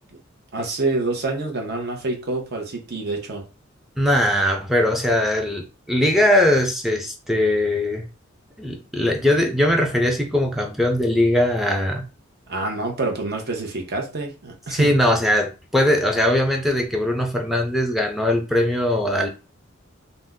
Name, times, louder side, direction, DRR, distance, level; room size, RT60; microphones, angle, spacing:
voice 1, 0.5-3.5 12.5-14.9, right 2 dB, 55° right, 1 dB, 0.8 m, -27 dB
voice 2, 4.0-8.1 8.6-12.1 14.7-19.3, left 1 dB, ahead, 2 dB, 0.4 m, -20 dB
2.6 x 2.1 x 3.5 m, 0.31 s
head